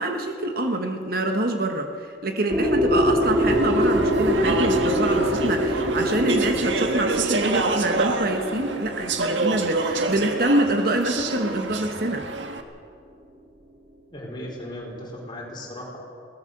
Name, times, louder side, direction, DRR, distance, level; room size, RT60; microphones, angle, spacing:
voice 1, 0.0-12.2, right 1 dB, 55° right, 4 dB, 1.4 m, -25 dB
sound 1, 2.5-10.3, equal, 30° right, 3.9 m, -24 dB
Speech / Chatter, 3.2-12.6, right 3 dB, 85° right, 1.5 m, -28 dB
voice 2, 14.1-16.0, left 1 dB, 25° left, -3 dB, 4.8 m, -36 dB
21.0 x 18.0 x 6.8 m, 2.3 s
head